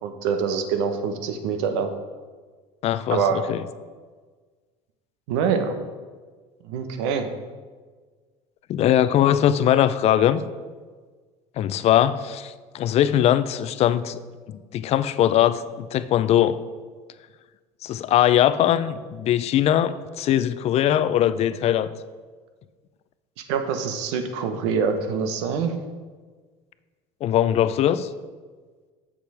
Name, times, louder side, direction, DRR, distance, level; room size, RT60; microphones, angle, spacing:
voice 1, 0.0-1.9 3.1-3.5 5.3-5.8 6.6-7.3 23.4-25.8, right 6 dB, 80° right, 7 dB, 1.0 m, -25 dB
voice 2, 2.8-3.2 3.5-3.6 8.7-10.4 11.6-14.2 14.5-16.6 17.8-21.9 27.2-28.1, left 11 dB, 45° left, 14 dB, 0.5 m, -21 dB
7.4 x 7.0 x 4.8 m, 1.5 s
supercardioid pair, 100°, 15 cm